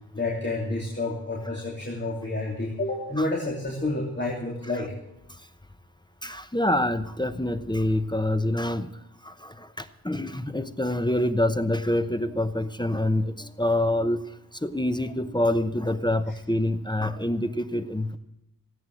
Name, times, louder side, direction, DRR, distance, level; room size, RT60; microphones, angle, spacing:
voice 1, 0.1-4.9, left 2 dB, 30° left, -2 dB, 3.0 m, -29 dB
voice 2, 6.2-8.9 9.2-14.2 14.6-18.2, left 1 dB, 10° left, 10 dB, 0.8 m, -26 dB
17.5 x 8.9 x 7.7 m, 0.83 s
wide cardioid pair, 85°, 36 cm